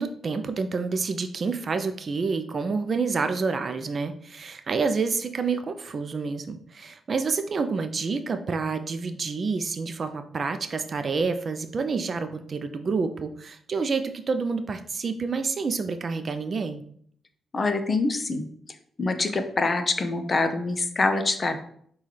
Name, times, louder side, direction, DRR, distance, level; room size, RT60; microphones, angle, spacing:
voice 1, 0.0-16.8, right 4 dB, 50° right, 9 dB, 0.4 m, -28 dB
voice 2, 17.5-18.5 19.0-21.6, left 3 dB, 40° left, 8 dB, 0.6 m, -25 dB
5.5 x 2.3 x 3.2 m, 0.63 s
cardioid pair, 65°, 0 cm